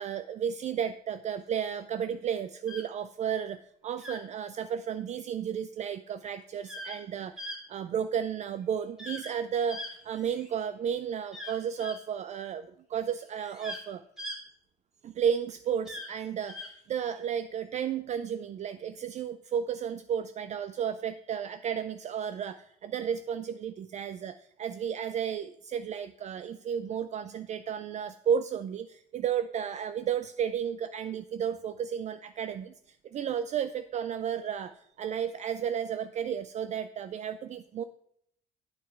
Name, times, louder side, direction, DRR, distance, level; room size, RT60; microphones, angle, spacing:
voice 1, 0.0-14.0 15.0-37.8, right 8 dB, 45° right, 11 dB, 0.4 m, -33 dB
sound 1, 2.7-2.8 4.0-4.2 6.6-7.0 7.4-7.6 9.0-9.3 9.7-10.6 11.3-12.0 13.3-13.8 14.2-14.4 15.9-16.1 16.5-16.7, left 1 dB, 5° right, 1.9 m, -40 dB
9.0 x 6.3 x 4.5 m, 0.70 s
cardioid pair, 110°, 17 cm